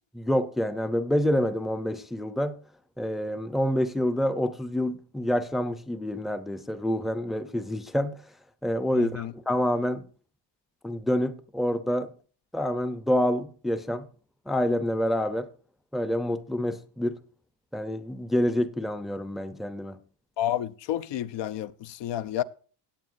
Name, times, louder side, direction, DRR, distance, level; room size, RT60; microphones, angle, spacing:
voice 1, 0.1-2.6 3.0-8.2 8.6-10.1 10.8-12.1 12.5-14.1 14.5-15.5 15.9-17.2 17.7-20.0, left 1 dB, ahead, 0.5 m, -27 dB
voice 2, 8.9-9.3 20.4-22.4, left 11 dB, 70° left, 0.7 m, -30 dB
17.0 x 8.7 x 2.6 m
cardioid pair, 160°, 44 cm